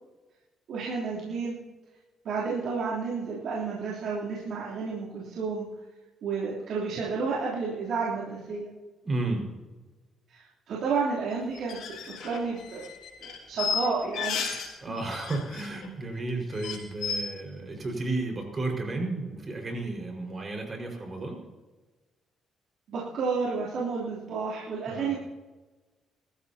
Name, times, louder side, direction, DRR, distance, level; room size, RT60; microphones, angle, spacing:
voice 1, 0.7-1.6 2.2-5.7 6.2-8.7 10.3-12.9 13.2-14.5 22.9-25.2, right 4 dB, 70° right, -7 dB, 3.2 m, -31 dB
voice 2, 9.0-9.5 14.8-21.4 24.9-25.1, right 2 dB, 35° right, 2 dB, 5.0 m, -33 dB
sound 1, 11.6-14.7 15.0-15.9 16.2-16.3 16.5-17.1, left 6 dB, 85° left, 3.7 m, -33 dB
24.0 x 13.5 x 2.9 m, 1.2 s
cardioid pair, 90°, 0 cm